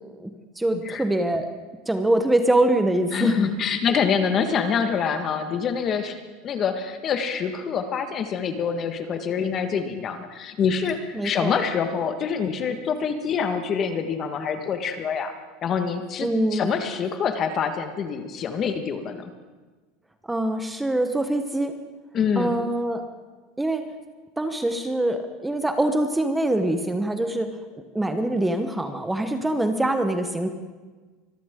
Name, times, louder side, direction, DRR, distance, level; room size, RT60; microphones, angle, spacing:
voice 1, 0.0-1.5 1.9-3.5 11.1-11.6 16.2-16.7 20.2-21.7 22.4-23.0 23.6-23.9 24.4-30.5, right 1 dB, 10° right, 7 dB, 1.1 m, -24 dB
voice 2, 0.7-1.0 3.1-15.3 15.6-19.2 22.1-22.6, left 6 dB, 35° left, 7 dB, 1.6 m, -26 dB
24.5 x 13.5 x 3.8 m, 1.3 s
supercardioid pair, 120°, 0 cm